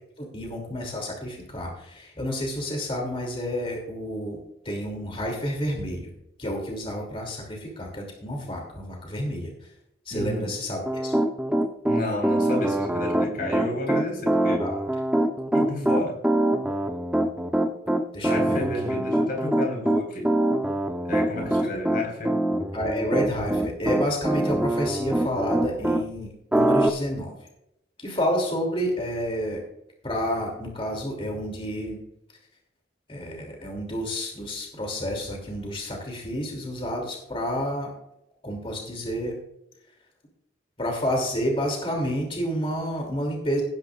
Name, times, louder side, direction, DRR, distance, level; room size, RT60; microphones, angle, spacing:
voice 1, 0.0-4.4 4.6-6.1 6.4-9.5 10.1-11.1 14.6-14.7 18.1-18.9 21.4-21.5 22.7-27.3 28.0-29.6 30.0-32.0 33.1-37.9 38.4-39.3 40.8-43.6, equal, 30° left, 1 dB, 2.8 m, -30 dB
voice 2, 10.1-10.5 11.9-14.7 15.5-16.2 18.2-20.3 21.0-22.4, left 1 dB, 50° left, 1 dB, 4.5 m, -31 dB
Piano, 10.9-26.0 26.5-26.9, right 1 dB, 5° right, 0.8 m, -24 dB
18.0 x 10.5 x 2.5 m, 0.80 s
head